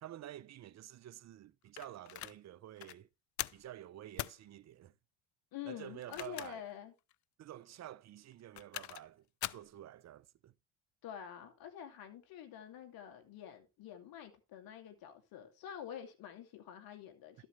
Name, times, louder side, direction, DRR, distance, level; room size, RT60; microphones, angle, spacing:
voice 1, 0.0-3.1 3.5-4.9 5.6-6.7 7.4-10.5, right 12 dB, 45° right, 0.7 m, -50 dB
sound 1, 1.8-2.4 2.8-3.0 3.4-3.7 4.2-4.4 5.9-6.7 7.1-7.2 8.3-9.1 9.4-9.7, left 16 dB, 50° left, 0.5 m, -42 dB
voice 2, 5.5-6.9 11.0-17.5, left 10 dB, 65° left, 2.6 m, -48 dB
12.5 x 7.9 x 3.2 m
supercardioid pair, 90°, 38 cm